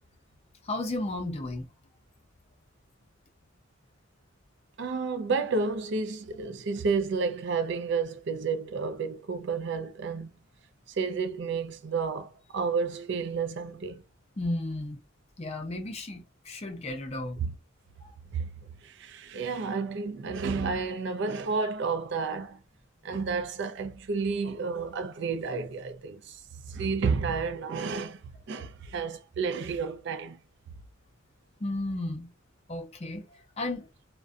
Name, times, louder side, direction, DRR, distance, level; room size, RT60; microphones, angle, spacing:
voice 1, 0.6-1.7 14.4-15.0 15.4-17.4 31.6-32.3 32.7-33.3 33.6-33.9, left 2 dB, 30° left, 0.5 m, -33 dB
voice 2, 4.8-10.3 10.9-14.0 17.4-17.5 18.3-18.5 18.8-22.6 23.0-26.4 26.7-28.2 28.5-30.4, right 4 dB, 60° right, 0.4 m, -31 dB
2.5 x 2.1 x 2.3 m
head